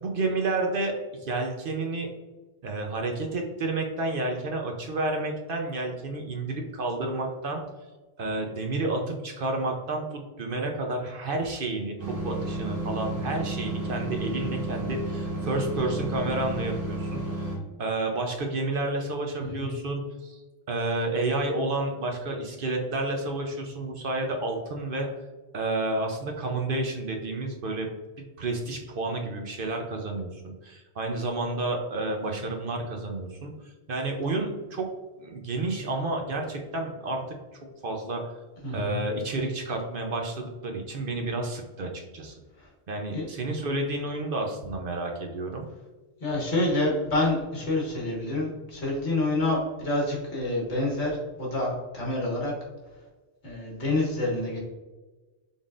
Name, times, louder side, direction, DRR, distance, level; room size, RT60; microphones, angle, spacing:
voice 1, 0.0-0.9 1.2-2.1 2.6-7.6 8.2-17.5 17.8-20.4 20.7-25.1 25.5-27.9 28.4-33.5 33.9-34.9 35.2-37.2 37.8-38.3 38.7-42.3 42.9-45.7, right 2 dB, 55° right, 2 dB, 0.8 m, -30 dB
sound 1, 12.0-17.6, right 2 dB, 35° right, 1.1 m, -32 dB
voice 2, 19.4-19.7 38.6-39.0 43.1-43.3 46.2-52.5 53.4-54.6, left 2 dB, 70° left, -2 dB, 1.7 m, -27 dB
5.5 x 3.6 x 2.4 m, 1.2 s
omnidirectional pair, 1.2 m